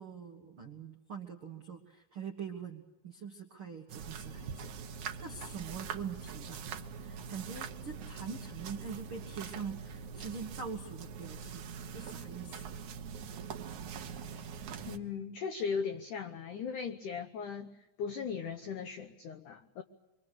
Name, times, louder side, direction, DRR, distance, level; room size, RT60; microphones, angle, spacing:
voice 1, 0.0-4.8 5.2-12.8, right 6 dB, 90° right, 3 dB, 1.1 m, -44 dB
sound 1, 3.9-15.0, right 6 dB, 70° right, 1.8 m, -43 dB
voice 2, 14.9-19.8, left 6 dB, 85° left, 8 dB, 1.7 m, -38 dB
25.0 x 24.5 x 8.2 m, 1.0 s
omnidirectional pair, 5.1 m